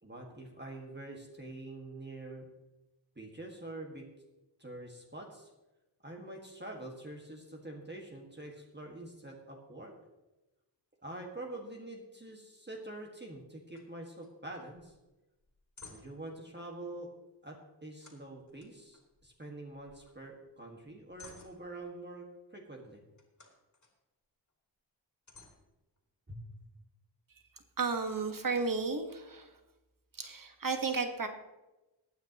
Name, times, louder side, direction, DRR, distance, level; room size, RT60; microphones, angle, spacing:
voice 1, 0.0-2.5 3.1-4.1 4.6-5.5 6.0-9.9 11.0-14.9 15.9-17.1 17.4-23.0 26.3-26.4, right 2 dB, 25° right, 0 dB, 1.7 m, -46 dB
sound 1, 13.7-13.9 14.2-14.3 14.7-15.0 15.4-16.3 18.0-19.4 19.7-20.3 20.7-22.0 23.1-23.9 24.5-24.6 25.3-26.3, left 3 dB, 40° left, 2.7 m, -57 dB
voice 2, 27.8-29.5 30.2-31.3, right 4 dB, 45° right, 6 dB, 1.5 m, -33 dB
21.5 x 9.4 x 3.0 m, 1.0 s
wide cardioid pair, 115°, 45 cm